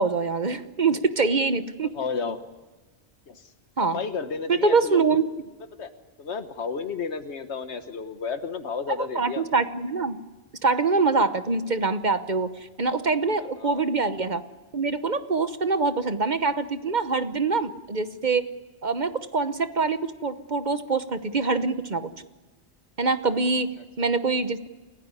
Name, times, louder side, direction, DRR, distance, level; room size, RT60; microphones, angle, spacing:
voice 1, 0.0-1.9 3.8-4.0 4.5-5.3 9.0-10.2 10.6-14.4 14.7-18.5 18.8-22.1 23.0-23.7 24.0-24.7, right 4 dB, 45° right, 11 dB, 1.1 m, -24 dB
voice 2, 1.9-2.4 3.3-3.5 3.9-5.0 5.8-5.9 6.2-9.4 13.6-13.8, left 5 dB, 90° left, 9 dB, 1.5 m, -32 dB
29.0 x 16.0 x 9.7 m, 1.2 s
omnidirectional pair, 1.1 m